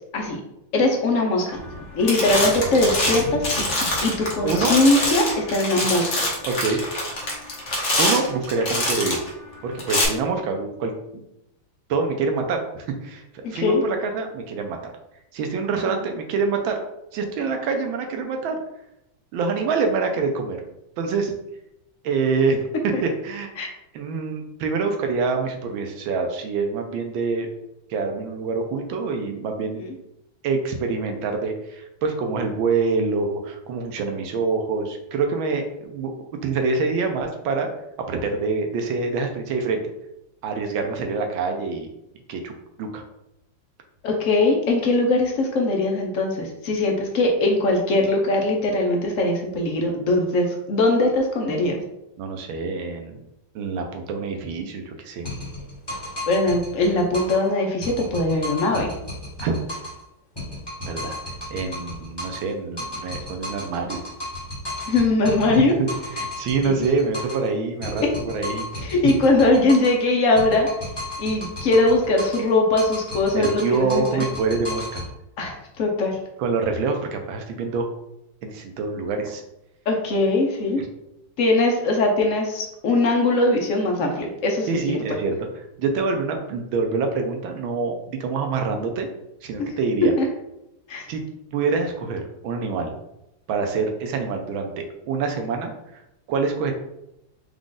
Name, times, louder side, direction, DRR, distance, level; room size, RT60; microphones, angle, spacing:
voice 1, 0.7-1.6 1.9-3.7 4.0-6.3 13.4-13.8 22.9-23.0 23.6-23.7 29.8-29.9 44.0-51.8 56.3-58.9 64.9-65.8 66.6-66.7 68.8-70.7 71.2-74.2 75.4-76.2 79.9-80.8 81.4-84.7 90.0-90.2 90.9-91.1, left 2 dB, 60° left, 1 dB, 0.8 m, -21 dB
sound 1, 1.6-1.8 2.1-9.3 9.8-10.0, left 1 dB, 45° left, 1.2 m, -24 dB
voice 2, 4.4-4.8 6.4-6.8 7.9-9.2 9.6-10.9 11.9-14.9 15.3-16.8 17.1-18.6 19.3-20.6 21.0-21.3 22.0-22.7 23.0-27.5 27.9-29.8 30.4-36.1 36.4-37.7 38.1-39.8 40.4-41.9 42.3-43.0 52.2-53.3 53.5-55.3 59.4-59.5 60.8-61.2 61.5-64.0 65.8-68.7 73.3-75.0 76.4-77.9 78.4-79.4 80.8-80.9 84.7-89.1 89.4-90.1 91.1-91.2 91.5-92.9 93.5-95.7 96.3-96.7, right 4 dB, 90° right, 4 dB, 1.5 m, -26 dB
sound 2, 55.2-57.5 57.8-60.0 60.4-62.5 62.8-67.5 67.8-70.0 70.4-72.5 72.8-75.1, left 1 dB, 15° left, 1.0 m, -34 dB
5.0 x 2.4 x 3.8 m, 0.85 s
omnidirectional pair, 2.1 m